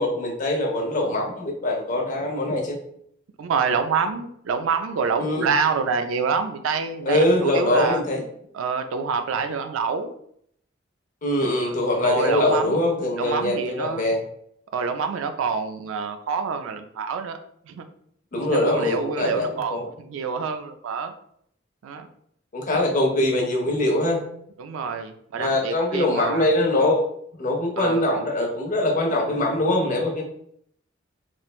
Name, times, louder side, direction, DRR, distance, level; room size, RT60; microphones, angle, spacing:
voice 1, 0.0-2.8 5.2-5.5 7.0-8.2 11.2-14.2 18.3-19.9 22.5-24.2 25.3-27.0 27.4-30.2, left 1 dB, 45° left, 0 dB, 0.6 m, -23 dB
voice 2, 3.4-8.0 8.5-10.1 11.4-11.7 12.0-12.8 13.2-14.1 14.7-17.4 17.6-17.9 18.4-21.1 21.8-22.1 24.6-26.5 27.8-28.0, right 5 dB, 85° right, 8 dB, 0.3 m, -27 dB
3.1 x 2.0 x 2.3 m, 0.68 s
head